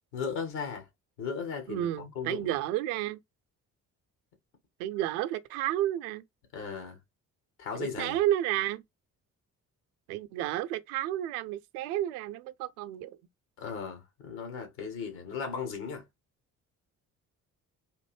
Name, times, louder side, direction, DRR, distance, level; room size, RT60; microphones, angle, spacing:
voice 1, 0.1-0.9 1.2-2.5 6.5-7.0 7.6-8.2 13.6-16.0, left 6 dB, 75° left, 1.4 m, -36 dB
voice 2, 1.7-3.2 4.8-6.2 7.7-8.8 10.1-13.2, right 13 dB, 70° right, 0.5 m, -31 dB
3.6 x 2.6 x 2.9 m
figure-of-eight pair, 40°, 45 cm